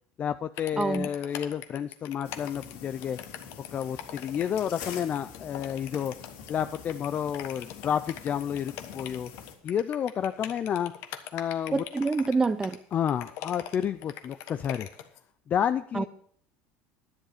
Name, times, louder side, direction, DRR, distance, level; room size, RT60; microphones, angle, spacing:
voice 1, 0.2-3.2 3.7-6.1 6.5-9.3 9.6-10.9 11.3-11.9 12.9-14.9 15.5-16.1, left 9 dB, 30° left, 0.4 m, -30 dB
sound 1, 0.6-15.2, left 11 dB, 65° left, 1.2 m, -42 dB
voice 2, 0.8-1.1 11.7-12.8 15.9-16.1, right 3 dB, 15° right, 0.6 m, -26 dB
sound 2, 2.2-9.5, left 7 dB, 85° left, 2.7 m, -45 dB
11.0 x 10.0 x 4.9 m
cardioid pair, 145°, 5 cm